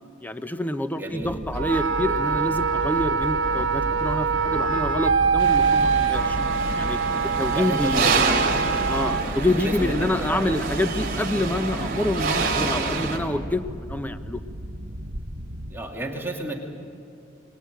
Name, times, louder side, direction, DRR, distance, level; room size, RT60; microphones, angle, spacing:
voice 1, 0.2-6.4 6.8-7.0 7.4-8.0 8.9-14.4, left 1 dB, 10° left, 10 dB, 0.7 m, -27 dB
voice 2, 0.9-1.4 1.7-1.8 7.5-8.6 9.2-10.6 15.7-16.6, right 1 dB, 10° right, -1 dB, 2.5 m, -32 dB
sound 1, 1.2-15.8, right 1 dB, 70° right, 2.0 m, -34 dB
Wind instrument woodwind instrument, 1.6-9.3, right 5 dB, 90° right, 1.2 m, -24 dB
sound 2, 5.4-13.2, right 4 dB, 50° right, 3.7 m, -27 dB
25.5 x 20.5 x 9.2 m, 2.6 s
head